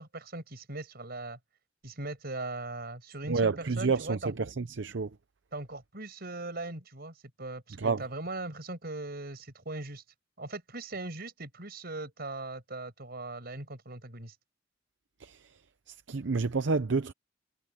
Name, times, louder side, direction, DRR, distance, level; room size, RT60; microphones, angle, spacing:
voice 1, 0.0-1.4 1.8-4.3 5.5-10.0 10.4-14.3, right 2 dB, 55° right, 6.2 m, -39 dB
voice 2, 3.3-5.1 7.8-8.0 15.2-15.4 15.9-17.1, right 4 dB, 70° right, 0.7 m, -29 dB
head